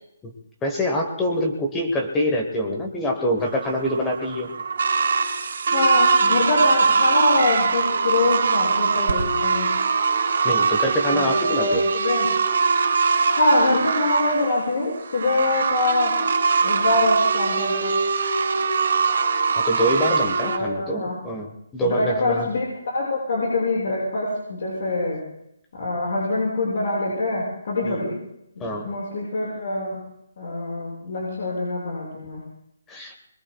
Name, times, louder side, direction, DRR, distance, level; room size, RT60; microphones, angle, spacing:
voice 1, 0.6-4.5 10.4-11.8 19.5-22.5 27.8-28.1 28.6-28.9 32.9-33.1, equal, 10° left, 2 dB, 1.1 m, -25 dB
sound 1, 3.4-20.6, right 5 dB, 60° right, 3.2 m, -22 dB
voice 2, 5.7-9.7 11.1-12.3 13.4-16.1 16.6-18.0 20.4-21.2 21.8-25.2 25.7-28.1 28.6-30.0 30.4-32.4, left 2 dB, 50° left, -5 dB, 6.5 m, -24 dB
23.5 x 22.0 x 2.3 m, 0.80 s
hypercardioid pair, 170°, 0 cm